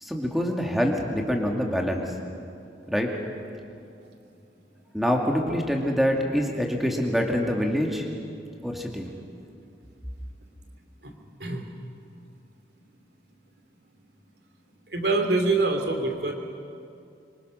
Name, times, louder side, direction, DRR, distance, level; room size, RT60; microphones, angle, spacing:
voice 1, 0.0-2.0 2.9-3.1 4.9-8.1 8.6-9.1, equal, ahead, 1 dB, 2.4 m, -25 dB
voice 2, 14.9-16.3, right 3 dB, 65° right, 4 dB, 2.8 m, -25 dB
25.0 x 24.5 x 6.5 m, 2.5 s
head